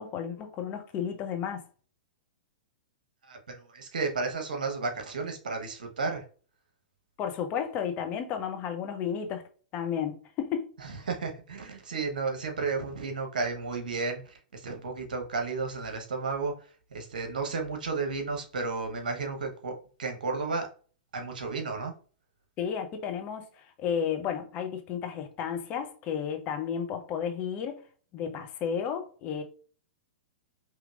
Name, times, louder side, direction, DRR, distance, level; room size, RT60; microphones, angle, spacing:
voice 1, 0.0-1.6 7.2-9.4 9.7-10.7 22.6-27.8 28.1-29.4, left 8 dB, 30° left, 0.8 m, -32 dB
voice 2, 3.3-6.2 10.8-16.5 16.9-19.7 20.0-20.7 21.1-21.9, right 4 dB, 65° right, 1.1 m, -33 dB
5.1 x 3.0 x 2.4 m
figure-of-eight pair, 105°, 5 cm